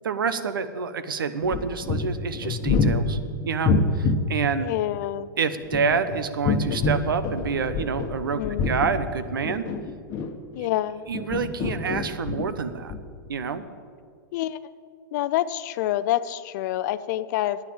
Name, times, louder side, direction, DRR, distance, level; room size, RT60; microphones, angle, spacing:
voice 1, 0.0-3.2 3.4-4.7 5.4-9.7 10.6-10.7 11.1-12.9 13.3-13.6, right 5 dB, 85° right, 12 dB, 0.9 m, -27 dB
sound 1, 1.4-4.3 5.5-8.1 8.4-10.6 11.1-12.5 12.9-13.0, left 3 dB, 35° left, 1.2 m, -26 dB
voice 2, 4.6-5.3 8.4-8.7 10.6-11.1 14.3-14.6 15.1-17.6, left 13 dB, 55° left, 15 dB, 0.6 m, -27 dB
9.5 x 9.2 x 8.8 m, 2.1 s
hypercardioid pair, 115°, 11 cm